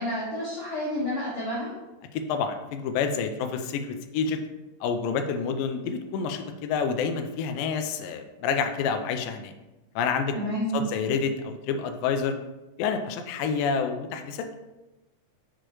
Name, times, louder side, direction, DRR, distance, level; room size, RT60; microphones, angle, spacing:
voice 1, 0.0-1.7 10.3-10.8, equal, 45° left, -10 dB, 2.1 m, -30 dB
voice 2, 2.1-4.4 4.8-9.5 10.0-10.4 10.7-12.4 12.8-14.5, left 6 dB, 85° left, 6 dB, 2.0 m, -28 dB
6.6 x 6.2 x 3.0 m, 1.0 s
omnidirectional pair, 4.5 m